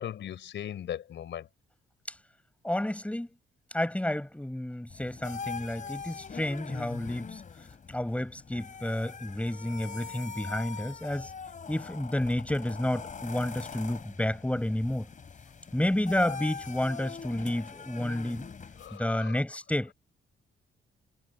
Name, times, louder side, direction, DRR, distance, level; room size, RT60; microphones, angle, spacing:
voice 1, 0.0-1.5 18.8-19.4, left 10 dB, 70° left, 4.2 m, -38 dB
voice 2, 2.6-3.3 3.7-7.4 7.9-11.3 11.7-15.1 15.7-18.4 18.9-19.9, left 1 dB, 5° left, 6.5 m, -30 dB
sound 1, 4.9-19.0, left 5 dB, 40° left, 4.2 m, -42 dB
cardioid pair, 90°, 20 cm